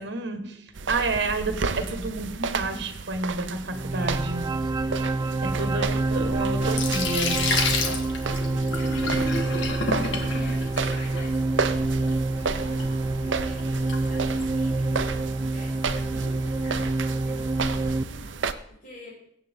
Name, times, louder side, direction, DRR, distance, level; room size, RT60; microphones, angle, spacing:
voice 1, 0.0-4.4 5.0-5.1 5.6-7.4, right 3 dB, 65° right, 7 dB, 1.7 m, -30 dB
sound 1, 0.7-18.5, right 4 dB, 85° right, 0.7 m, -33 dB
sound 2, 3.7-18.0, right 2 dB, 20° right, 0.4 m, -27 dB
voice 2, 3.9-4.2 5.4-6.3 8.2-19.2, left 1 dB, 50° left, -9 dB, 5.6 m, -47 dB
Sink (filling or washing), 5.9-14.7, left 3 dB, 75° left, 1.8 m, -32 dB
21.0 x 8.6 x 3.7 m, 0.69 s
head